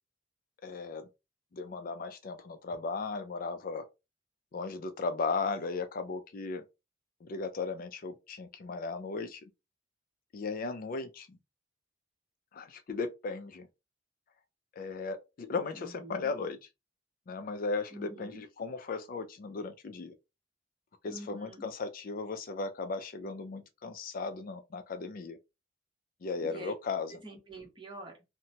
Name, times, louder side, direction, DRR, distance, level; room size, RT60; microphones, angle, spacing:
voice 1, 0.6-1.1 1.5-3.8 4.5-6.6 7.2-9.4 10.3-11.4 12.5-13.7 14.8-16.6 17.3-20.1 21.0-25.4 26.2-27.1, left 4 dB, 50° left, 0.4 m, -36 dB
voice 2, 15.7-16.3 17.9-18.4 21.1-21.7 26.4-26.7 27.1-28.2, right 1 dB, 25° right, 1.0 m, -46 dB
2.8 x 2.1 x 2.7 m
head